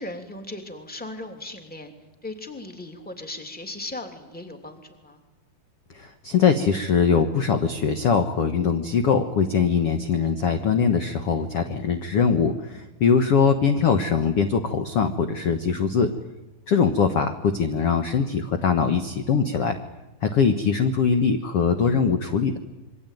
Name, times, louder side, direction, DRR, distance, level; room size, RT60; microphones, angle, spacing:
voice 1, 0.0-1.9 2.2-5.2 12.7-12.9, left 2 dB, 5° left, 5 dB, 2.3 m, -37 dB
voice 2, 5.9-16.1 16.7-19.8 20.2-22.6, left 6 dB, 60° left, 7 dB, 1.6 m, -22 dB
27.0 x 24.0 x 9.3 m, 1.1 s
omnidirectional pair, 4.4 m